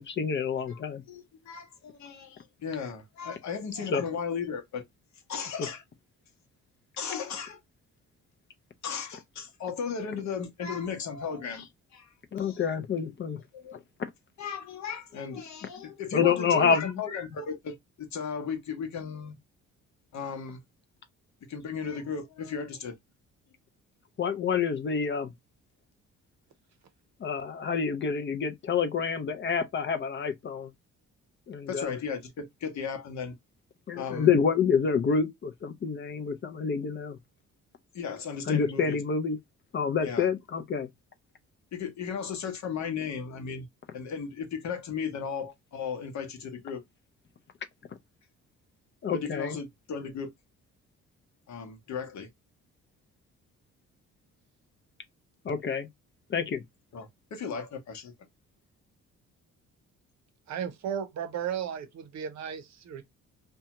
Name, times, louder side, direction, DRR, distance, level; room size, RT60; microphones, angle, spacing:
voice 1, 0.0-1.0 3.9-4.0 12.3-13.4 16.1-17.0 24.2-25.3 27.2-30.7 31.5-31.9 33.9-37.2 38.5-39.4 39.7-40.9 49.0-49.6 55.4-55.9 56.3-56.6, left 6 dB, 40° left, 0.5 m, -27 dB
voice 2, 1.1-4.8 5.3-5.8 7.0-7.6 8.8-12.6 13.5-13.8 14.4-19.4 20.1-20.6 21.5-22.9 31.7-33.3 34.0-34.3 37.9-39.0 40.0-40.3 41.7-43.7 43.9-46.8 49.1-50.3 51.5-52.3 56.9-58.1, left 6 dB, 65° left, 0.9 m, -36 dB
voice 3, 60.5-63.0, right 8 dB, 65° right, 0.7 m, -34 dB
2.7 x 2.2 x 2.8 m
cardioid pair, 90°, 30 cm